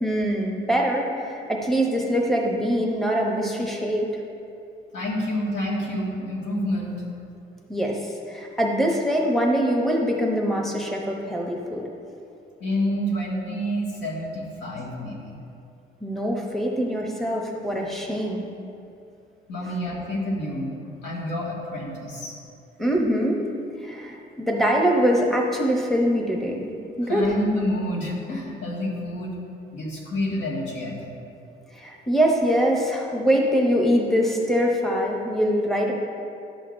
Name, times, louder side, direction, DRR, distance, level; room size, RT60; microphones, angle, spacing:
voice 1, 0.0-4.1 7.7-8.0 8.3-11.8 16.0-18.4 22.8-23.5 23.8-26.7 27.0-27.3 31.7-35.9, equal, ahead, -1 dB, 0.8 m, -23 dB
voice 2, 4.9-7.0 12.6-15.4 19.5-22.4 27.1-29.4 29.7-31.1, left 1 dB, 85° left, -4 dB, 1.9 m, -28 dB
11.5 x 7.8 x 2.6 m, 2.7 s
cardioid pair, 150°, 18 cm